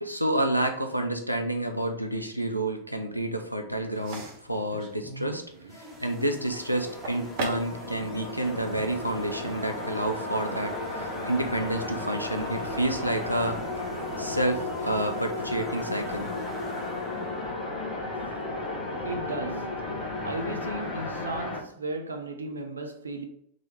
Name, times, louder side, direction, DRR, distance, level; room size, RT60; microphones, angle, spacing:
voice 1, 0.0-5.4 5.7-13.6 14.2-16.3, right 1 dB, 90° left, 0.5 m, -29 dB
sound 1, 3.9-9.8, right 3 dB, 50° right, 0.8 m, -41 dB
sound 2, 5.7-17.6, right 2 dB, 5° right, 1.4 m, -45 dB
sound 3, 6.0-21.6, left 2 dB, 30° left, 1.1 m, -34 dB
voice 2, 16.7-18.7 19.0-19.9 20.2-23.2, right 2 dB, 75° right, 0.6 m, -37 dB
3.7 x 3.0 x 3.2 m
figure-of-eight pair, 90°, 0 cm